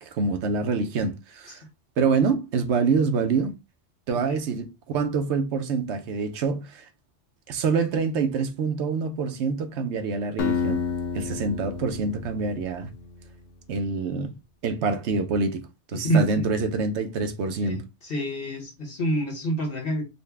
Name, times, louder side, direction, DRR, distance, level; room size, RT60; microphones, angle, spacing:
voice 1, 0.0-1.6 2.0-3.5 4.1-6.9 7.5-10.8 11.1-12.9 13.7-14.3 14.6-15.6 15.9-17.8, right 4 dB, 75° right, 0.9 m, -26 dB
Acoustic guitar, 10.4-13.4, left 6 dB, 75° left, 0.9 m, -30 dB
voice 2, 15.9-16.5 17.6-20.1, right 1 dB, 55° left, 1.1 m, -27 dB
4.0 x 2.1 x 3.3 m
omnidirectional pair, 1.2 m